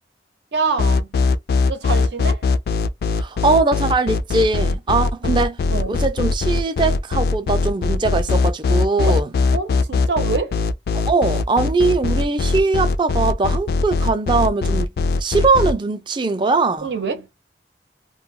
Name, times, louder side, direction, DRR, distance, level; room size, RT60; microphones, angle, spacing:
voice 1, 0.5-1.1 1.7-2.4 5.2-5.4 5.7-6.0 9.0-9.2 9.5-10.6 16.8-17.3, right 4 dB, 80° right, 0.7 m, -25 dB
sound 1, 0.8-15.7, left 3 dB, 60° left, 0.3 m, -20 dB
voice 2, 3.2-5.5 5.9-9.3 11.1-14.9 15.2-16.9, right 3 dB, 25° right, 0.4 m, -20 dB
2.2 x 2.1 x 3.6 m
head